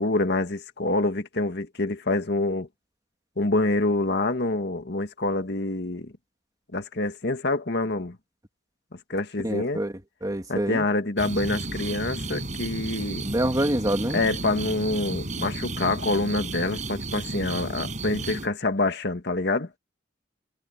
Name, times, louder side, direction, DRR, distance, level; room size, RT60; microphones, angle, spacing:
voice 1, 0.0-2.7 3.4-6.1 6.7-8.2 9.1-9.8 10.5-13.2 14.1-19.7, left 2 dB, 60° left, 2.0 m, -26 dB
voice 2, 9.4-9.9 10.2-10.8 13.2-14.2, right 1 dB, 20° right, 2.4 m, -26 dB
sound 1, 11.2-18.5, right 2 dB, 40° right, 6.6 m, -33 dB
head